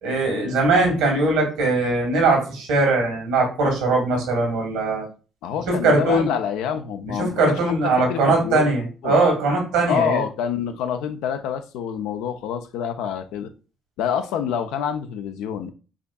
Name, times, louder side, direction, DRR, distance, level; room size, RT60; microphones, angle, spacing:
voice 1, 0.0-5.1 5.7-6.3 7.2-10.2, right 3 dB, 85° right, 1.5 m, -20 dB
voice 2, 5.4-8.7 9.0-9.2 9.9-13.5 14.0-15.7, left 8 dB, 80° left, 0.4 m, -27 dB
4.8 x 2.6 x 2.3 m
supercardioid pair, 60°, 0 cm